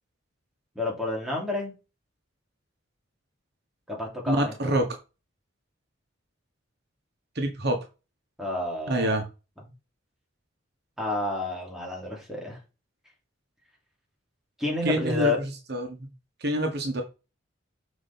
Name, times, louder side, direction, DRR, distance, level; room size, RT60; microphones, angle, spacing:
voice 1, 0.7-1.7 3.9-4.7 8.4-9.1 11.0-12.6 14.6-15.4, left 2 dB, ahead, 3.0 m, -30 dB
voice 2, 4.3-4.9 7.3-7.8 8.9-9.2 14.8-15.3 15.7-16.0 16.4-17.0, right 1 dB, 60° right, 1.4 m, -26 dB
7.4 x 5.1 x 4.3 m
head